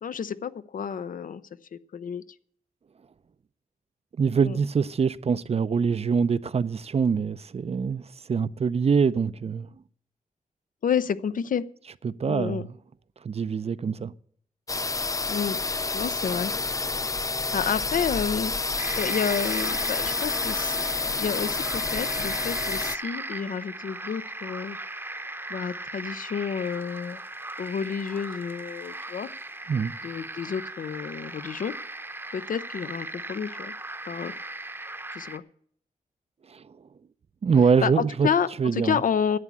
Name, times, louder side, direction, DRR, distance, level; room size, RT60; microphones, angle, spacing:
voice 1, 0.0-1.4 1.7-2.2 4.4-4.6 10.8-11.6 12.3-12.6 15.2-15.6 15.9-16.5 17.5-18.5 19.0-24.8 25.5-27.2 27.6-29.3 30.0-31.7 32.3-33.7 34.1-34.3 35.1-35.4 37.8-39.4, left 7 dB, 70° left, 0.6 m, -30 dB
voice 2, 4.2-9.7 12.0-12.6 13.2-14.1 29.7-29.9 36.5-36.8 37.4-38.3 38.6-39.0, right 6 dB, 45° right, 0.5 m, -24 dB
sound 1, 14.7-23.0, left 3 dB, 25° left, 0.4 m, -29 dB
sound 2, 18.8-35.4, right 2 dB, 15° right, 0.8 m, -38 dB
11.0 x 8.3 x 8.3 m
wide cardioid pair, 100°, 15 cm